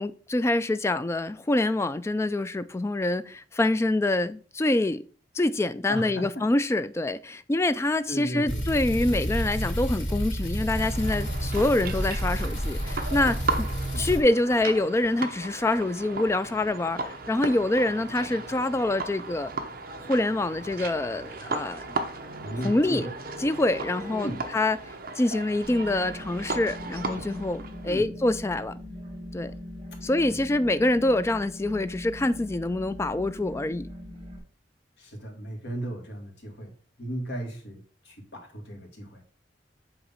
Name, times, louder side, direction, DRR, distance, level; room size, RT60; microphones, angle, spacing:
voice 1, 0.0-5.0 5.3-13.7 14.0-19.5 20.1-21.8 22.6-23.0 23.4-24.8 25.2-28.7 29.3-29.5 30.0-33.9, left 2 dB, 15° left, 0.3 m, -26 dB
voice 2, 5.9-6.5 8.1-8.7 13.9-14.2 22.4-23.1 24.1-24.4 27.9-28.1 30.3-30.4 35.0-36.7 37.0-39.2, right 1 dB, 65° left, 1.9 m, -36 dB
sound 1, 8.5-14.2, equal, 85° left, 2.8 m, -30 dB
sound 2, 10.7-28.0, right 3 dB, 55° right, 0.8 m, -36 dB
sound 3, 25.6-34.4, left 1 dB, 30° right, 1.6 m, -41 dB
7.9 x 2.9 x 5.6 m
head